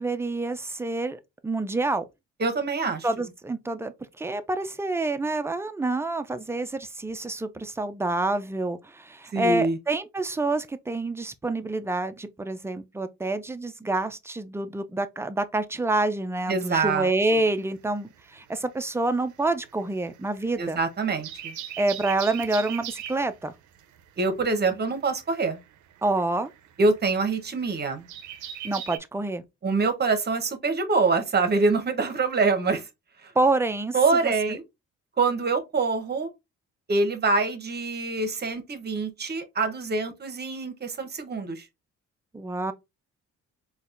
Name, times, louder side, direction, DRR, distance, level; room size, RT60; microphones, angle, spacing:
voice 1, 0.0-2.0 3.0-20.8 21.8-23.5 26.0-26.5 28.6-29.4 33.4-33.9 34.2-34.6 42.3-42.7, right 2 dB, 10° right, 0.3 m, -27 dB
voice 2, 2.4-3.1 9.3-9.8 16.5-17.1 20.6-21.5 24.2-25.6 26.8-28.1 29.6-32.9 33.2-33.3 33.9-34.6 35.2-36.3 36.9-41.6, right 3 dB, 35° right, 0.8 m, -25 dB
sound 1, 17.2-18.6 18.9-29.0, right 10 dB, 75° right, 0.5 m, -40 dB
4.0 x 2.3 x 2.4 m
cardioid pair, 90°, 30 cm